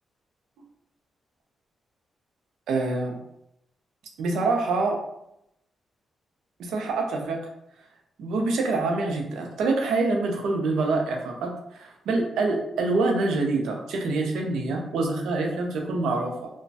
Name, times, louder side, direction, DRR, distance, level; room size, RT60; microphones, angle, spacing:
voice 1, 2.7-3.2 4.2-5.0 6.6-7.4 8.2-16.5, right 3 dB, 85° right, 2 dB, 0.5 m, -26 dB
3.0 x 2.1 x 2.7 m, 0.80 s
cardioid pair, 80°, 0 cm